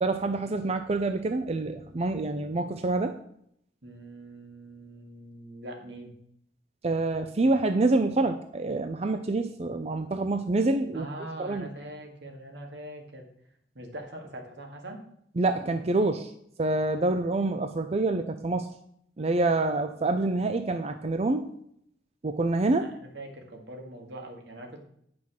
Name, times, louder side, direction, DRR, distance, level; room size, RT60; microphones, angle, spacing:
voice 1, 0.0-3.2 6.8-11.1 11.4-11.7 15.4-16.3 16.6-18.7 19.2-21.5 22.2-22.9, right 2 dB, 35° right, 8 dB, 0.5 m, -26 dB
voice 2, 3.8-6.1 10.9-13.3 13.7-15.0 22.8-24.9, right 1 dB, 80° right, 2 dB, 2.1 m, -42 dB
8.9 x 6.1 x 6.2 m, 0.71 s
head